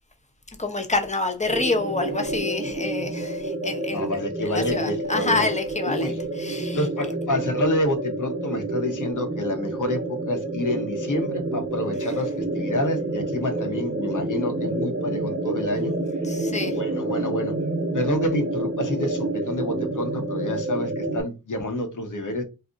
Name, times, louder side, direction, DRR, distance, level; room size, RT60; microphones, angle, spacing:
voice 1, 0.6-4.0 4.5-6.8 16.2-16.8, left 3 dB, 20° left, 0.7 m, -27 dB
sound 1, 1.5-21.2, right 2 dB, 25° right, 0.6 m, -28 dB
voice 2, 3.9-5.5 5.8-6.2 6.7-16.0 16.3-17.5 17.9-22.4, left 1 dB, 55° left, 0.7 m, -28 dB
2.4 x 2.0 x 3.7 m
wide cardioid pair, 60°, 37 cm